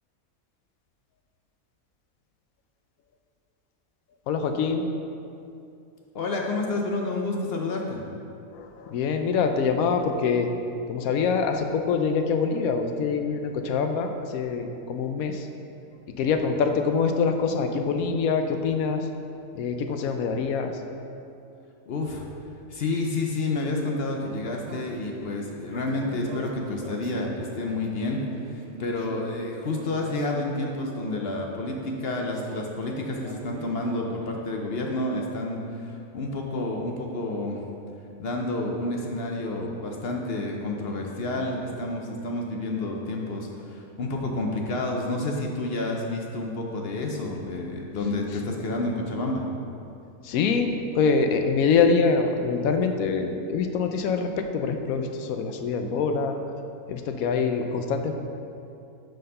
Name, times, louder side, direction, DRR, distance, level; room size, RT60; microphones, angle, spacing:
voice 1, 4.3-4.9 8.5-10.5 10.9-15.5 16.2-19.1 19.5-20.7 50.2-56.4 56.9-58.2, left 5 dB, 80° left, 6 dB, 1.0 m, -25 dB
voice 2, 6.1-8.0 21.9-22.2 22.7-28.2 28.5-37.6 38.2-49.4, left 2 dB, 55° left, 0 dB, 0.7 m, -29 dB
sound 1, 24.4-34.4, right 3 dB, 80° right, 0.4 m, -42 dB
6.3 x 4.6 x 5.4 m, 2.6 s
omnidirectional pair, 1.5 m